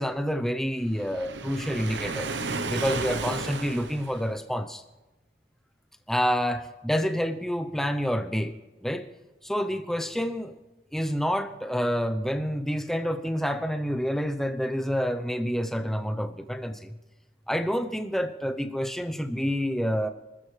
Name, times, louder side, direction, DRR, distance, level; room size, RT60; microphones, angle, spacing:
voice 1, 0.0-2.3 2.7-4.8 6.1-8.6 8.8-9.1 9.4-10.6 10.9-16.9 17.5-20.1, equal, ahead, 7 dB, 0.7 m, -28 dB
Waves surf, 0.9-4.4, right 3 dB, 80° right, 0.9 m, -33 dB
29.5 x 14.0 x 3.3 m, 1.1 s
head